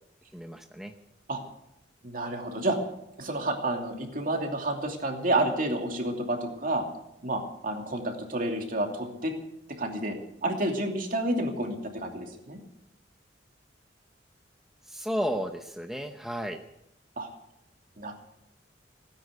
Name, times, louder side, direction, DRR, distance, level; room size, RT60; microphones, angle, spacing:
voice 1, 0.3-0.9 14.9-16.6, equal, ahead, 4 dB, 0.8 m, -33 dB
voice 2, 2.0-2.8 3.2-6.8 7.2-9.3 9.8-10.2 10.4-12.6 17.2-17.3 18.0-18.1, right 1 dB, 50° right, 2 dB, 2.8 m, -30 dB
17.5 x 9.9 x 8.1 m, 0.81 s
head